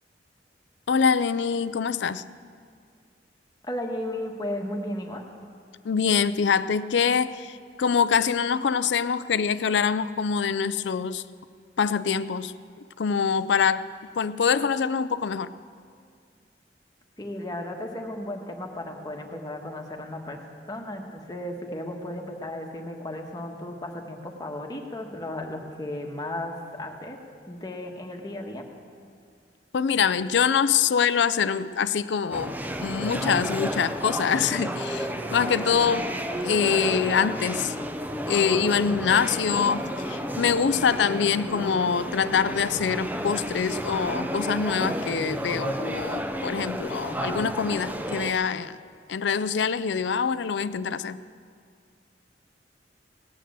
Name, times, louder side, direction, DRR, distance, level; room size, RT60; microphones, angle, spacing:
voice 1, 0.9-2.2 5.8-11.2 11.8-12.5 13.0-13.8 14.2-15.5 29.7-36.1 36.4-37.7 38.3-48.8 49.1-51.2, left 6 dB, 75° left, 15 dB, 0.4 m, -24 dB
voice 2, 3.6-5.2 17.2-20.4 20.7-27.2 27.5-28.6, left 1 dB, 25° left, 2 dB, 1.5 m, -34 dB
sound 1, 32.3-48.3, equal, 10° right, 0.7 m, -32 dB
18.0 x 9.4 x 7.5 m, 2.2 s
head